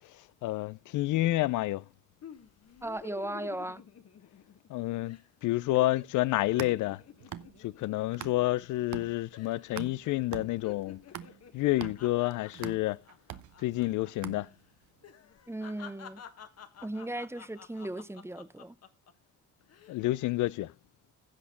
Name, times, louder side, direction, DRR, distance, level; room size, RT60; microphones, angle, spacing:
voice 1, 0.4-1.8 4.7-7.0 7.6-11.0 11.5-13.0 13.6-14.5 19.9-20.7, left 17 dB, 80° left, 0.5 m, -29 dB
sound 1, 2.2-4.7 5.1-5.3 5.6-9.0 9.3-9.7 10.0-14.1 14.4-14.6 15.0-19.1 19.6-20.0, left 8 dB, 55° left, 1.5 m, -51 dB
voice 2, 2.8-3.8 15.5-16.2 16.8-18.8, right 1 dB, 10° right, 0.7 m, -37 dB
sound 2, 6.3-8.6 8.9-14.9, right 11 dB, 70° right, 0.9 m, -44 dB
16.0 x 6.3 x 3.7 m
cardioid pair, 90°, 30 cm